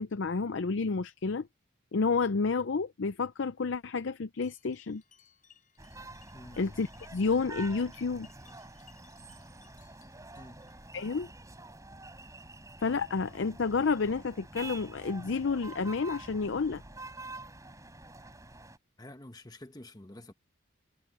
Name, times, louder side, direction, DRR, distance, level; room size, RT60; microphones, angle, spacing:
voice 1, 0.0-1.5 1.9-5.0 6.6-8.3 10.9-11.3 12.8-16.8, left 4 dB, 60° left, 0.5 m, -30 dB
sound 1, 4.4-11.8 12.1-12.5 12.9-13.1 13.7-13.9 14.6-14.7 15.4-15.5 16.2-16.3, left 8 dB, 40° left, 7.0 m, -64 dB
sound 2, 5.8-18.8, right 2 dB, 15° right, 5.1 m, -47 dB
voice 2, 19.0-20.3, left 1 dB, 20° left, 1.2 m, -48 dB
head